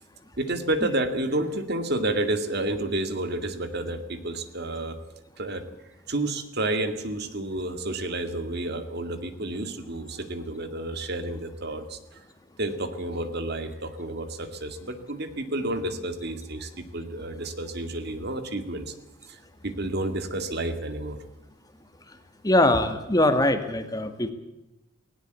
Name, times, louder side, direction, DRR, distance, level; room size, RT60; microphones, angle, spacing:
voice 1, 0.4-5.0 5.4-5.6 6.1-12.2 12.6-18.9 19.3-21.2, right 1 dB, 55° right, 8 dB, 2.3 m, -30 dB
voice 2, 22.4-24.3, left 1 dB, 20° left, 8 dB, 1.7 m, -22 dB
18.5 x 18.0 x 8.3 m, 0.95 s
head